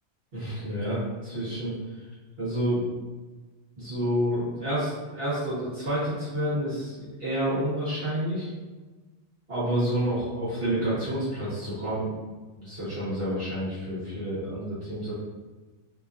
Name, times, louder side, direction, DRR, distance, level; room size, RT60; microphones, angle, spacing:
voice 1, 0.3-1.7 2.4-2.9 3.8-8.5 9.5-12.1 12.6-15.1, equal, 45° right, -11 dB, 1.5 m, -29 dB
3.8 x 2.8 x 2.5 m, 1.3 s
omnidirectional pair, 1.4 m